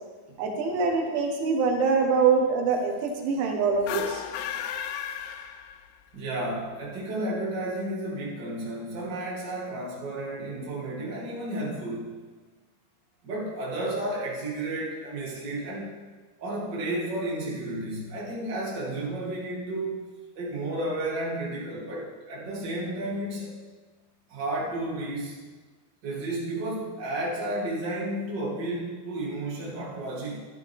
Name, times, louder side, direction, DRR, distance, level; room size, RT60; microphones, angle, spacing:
voice 1, 0.4-4.2, right 5 dB, 85° right, 2 dB, 3.7 m, -24 dB
sound 1, 3.8-6.1, left 9 dB, 80° left, 2.4 m, -34 dB
voice 2, 4.2-4.7 6.1-12.2 13.2-16.0 16.4-20.0 20.3-23.6 24.3-25.4 26.0-30.4, right 1 dB, 30° right, -6 dB, 2.5 m, -32 dB
12.5 x 12.0 x 3.5 m, 1.4 s
omnidirectional pair, 5.3 m